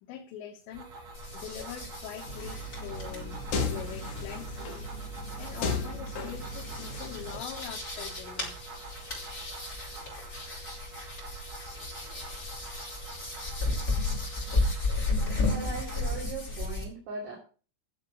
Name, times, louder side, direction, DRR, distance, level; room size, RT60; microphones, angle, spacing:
voice 1, 0.0-4.8 5.2-8.6, left 9 dB, 80° left, 4 dB, 3.4 m, -44 dB
sound 1, 0.7-16.1, right 2 dB, 45° right, 3.1 m, -46 dB
sound 2, 1.1-16.8, left 2 dB, 20° left, 6.5 m, -34 dB
sound 3, 2.3-7.4, left 3 dB, 50° left, 2.9 m, -35 dB
voice 2, 15.4-17.4, right 3 dB, 65° right, -3 dB, 4.8 m, -39 dB
12.0 x 7.3 x 6.1 m, 0.38 s
omnidirectional pair, 5.1 m